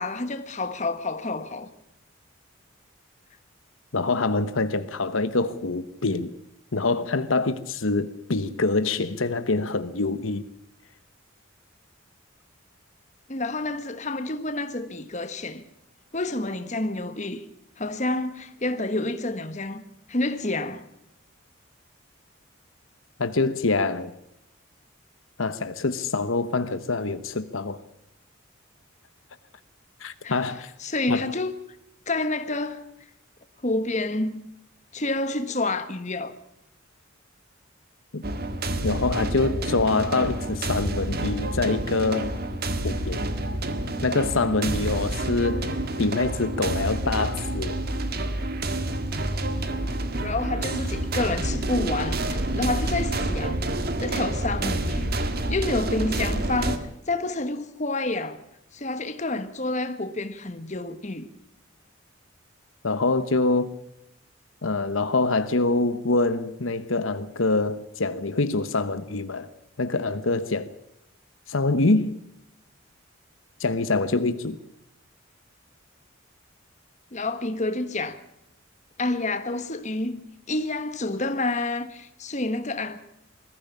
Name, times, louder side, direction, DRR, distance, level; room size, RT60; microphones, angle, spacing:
voice 1, 0.0-1.7 13.3-15.6 16.1-17.4 17.8-19.8 20.1-20.8 30.2-30.5 30.8-31.5 32.1-32.9 33.6-34.5 34.9-36.3 50.2-53.6 54.0-55.1 55.5-58.4 58.7-61.3 77.1-78.2 79.0-83.0, left 2 dB, 35° left, 1.4 m, -29 dB
voice 2, 3.9-6.3 6.7-10.5 23.2-24.1 25.4-27.8 30.0-30.7 31.1-31.2 38.1-38.2 38.8-42.3 42.8-43.2 44.0-47.8 62.8-63.8 64.6-69.5 69.8-70.7 71.5-72.1 73.6-74.6, left 3 dB, 75° left, 1.1 m, -25 dB
sound 1, 38.2-56.8, right 1 dB, 50° right, 1.7 m, -28 dB
21.0 x 14.5 x 8.5 m
head